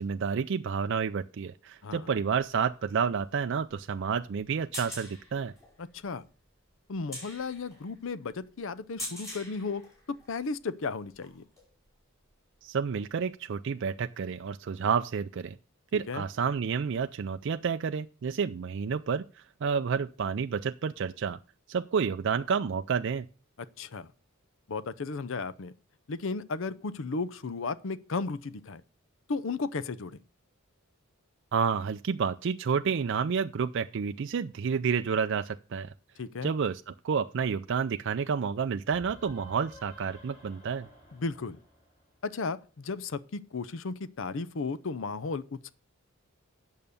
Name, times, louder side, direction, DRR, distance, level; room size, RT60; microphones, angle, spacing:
voice 1, 0.0-5.5 12.6-15.5 15.9-21.4 21.7-23.3 31.5-35.9 36.4-40.9, right 6 dB, 55° right, 0.4 m, -30 dB
sound 1, 2.2-10.5 11.0-11.8 13.1-13.2, left 1 dB, 15° left, 4.9 m, -45 dB
voice 2, 5.8-6.2 6.9-9.8 10.1-11.4 15.9-16.2 23.8-24.1 24.7-25.7 26.1-28.8 29.3-30.2 36.2-36.5 41.1-41.6 42.2-45.7, left 4 dB, 65° left, 0.6 m, -34 dB
sound 2, 38.9-42.5, left 1 dB, 35° left, 4.5 m, -53 dB
9.0 x 6.5 x 6.9 m
head